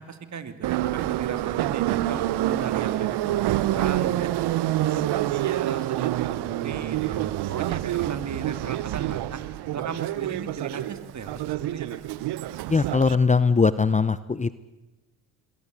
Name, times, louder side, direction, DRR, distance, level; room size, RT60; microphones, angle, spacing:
voice 1, 0.0-4.3 4.7-9.4 9.7-12.0, right 6 dB, 40° right, 10 dB, 3.0 m, -36 dB
Subway metro underground, 0.6-13.1, right 15 dB, 60° right, 1.2 m, -27 dB
voice 2, 12.7-14.6, left 4 dB, 15° left, 16 dB, 0.9 m, -21 dB
27.0 x 22.5 x 8.4 m, 1.1 s
hypercardioid pair, 60°, 44 cm